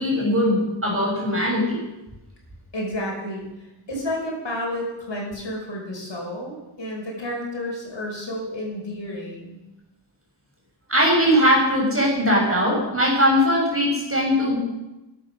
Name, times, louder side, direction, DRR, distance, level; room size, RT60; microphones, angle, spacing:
voice 1, 0.0-1.8 10.9-14.6, equal, 30° right, -2 dB, 6.3 m, -20 dB
voice 2, 2.7-9.6, left 1 dB, 65° left, -1 dB, 5.7 m, -31 dB
14.5 x 11.5 x 6.5 m, 0.99 s
wide cardioid pair, 90°, 47 cm